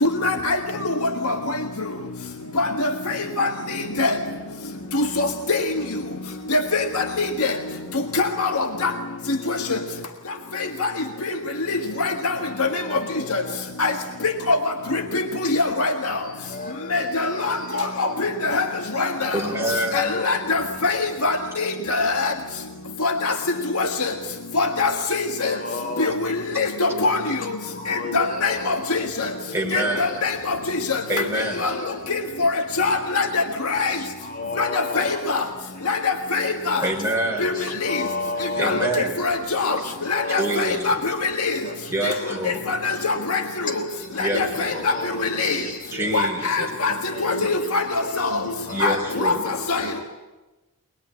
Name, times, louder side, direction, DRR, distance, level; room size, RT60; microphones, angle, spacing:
voice 1, 0.0-1.4 2.6-4.1 4.9-5.7 6.5-7.6 8.1-8.9 9.3-9.8 10.8-10.9 11.2-11.3 11.7-12.8 13.3-13.4 13.8-13.9 14.2-14.6 14.9-16.2 16.9-18.7 18.9-19.4 19.9-22.3 23.0-23.3 23.7-24.1 24.5-25.6 26.0-27.6 27.9-29.3 29.7-31.0 31.6-31.7 32.1-34.0 34.6-35.4 35.9-36.9 37.4-37.5 37.8-38.0 38.6-38.8 39.2-39.8 40.1-41.6 42.0-42.1 42.7-43.8 44.2-44.9 45.2-45.6 46.1-47.8 48.2-48.4 48.8-49.3 49.7-50.0, left 3 dB, 75° left, 4 dB, 1.7 m, -23 dB
voice 2, 12.3-13.7 15.4-15.7 16.0-17.8 18.2-18.3 19.7-20.5 25.1-26.2 27.7-29.1 29.5-30.5 31.1-32.1 33.8-35.4 35.8-35.9 37.3-39.0 39.6-41.1 41.5-42.8 43.7-46.4 46.8-50.0, left 2 dB, 40° left, 3 dB, 3.5 m, -34 dB
voice 3, 19.3-20.1 29.5-30.0 31.1-31.6 36.8-37.5 38.6-39.1 40.3-41.0 41.9-42.6 44.2-44.4 44.7-44.8 45.9-46.7 48.7-49.4, right 1 dB, 10° right, 0 dB, 4.6 m, -26 dB
23.0 x 21.0 x 9.8 m, 1.1 s
head